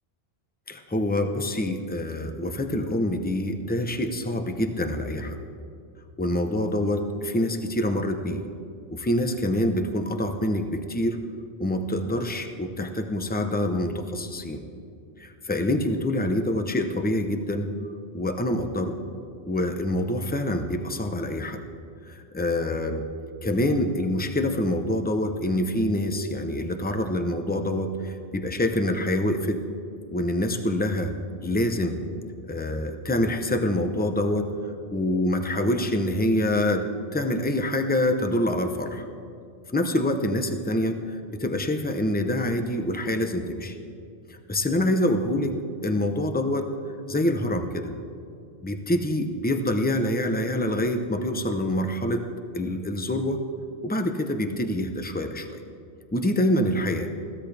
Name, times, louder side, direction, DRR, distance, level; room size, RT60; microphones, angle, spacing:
voice 1, 0.7-5.4 6.2-8.4 8.9-11.2 11.6-14.6 15.2-17.7 18.1-19.0 19.5-21.6 22.0-23.0 23.4-29.6 30.1-31.1 31.4-32.0 32.5-34.5 34.9-36.8 37.1-39.1 39.7-43.8 44.3-45.5 45.8-46.7 47.1-47.9 48.6-52.3 52.5-53.4 53.8-55.6 56.1-57.1, left 1 dB, 10° left, 6 dB, 0.8 m, -26 dB
21.5 x 16.0 x 3.4 m, 2.5 s
omnidirectional pair, 1.1 m